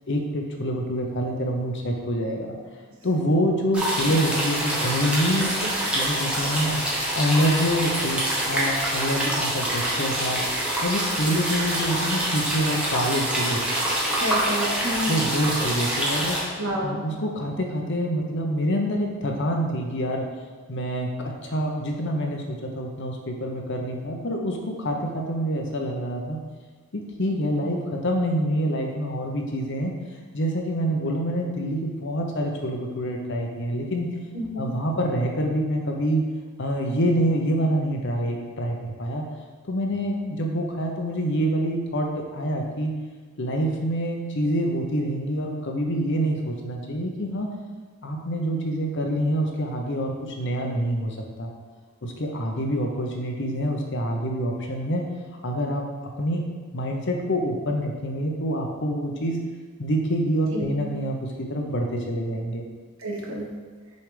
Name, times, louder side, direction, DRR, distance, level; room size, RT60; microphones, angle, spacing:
voice 1, 0.1-2.5 3.0-5.5 5.9-6.8 7.1-13.6 15.1-16.4 16.8-20.2 20.7-26.4 26.9-29.9 30.3-34.1 34.6-36.2 36.6-39.2 39.7-42.9 43.4-47.5 48.0-51.5 52.0-55.0 55.4-55.8 56.2-59.4 59.8-62.6, equal, 55° left, 1 dB, 0.9 m, -26 dB
sound 1, 3.7-16.4, right 1 dB, 5° right, 1.1 m, -26 dB
voice 2, 14.2-15.2 16.6-17.0 34.3-34.7 60.5-60.8 63.0-63.5, equal, 70° right, -3 dB, 1.5 m, -29 dB
6.7 x 3.4 x 5.1 m, 1.4 s
head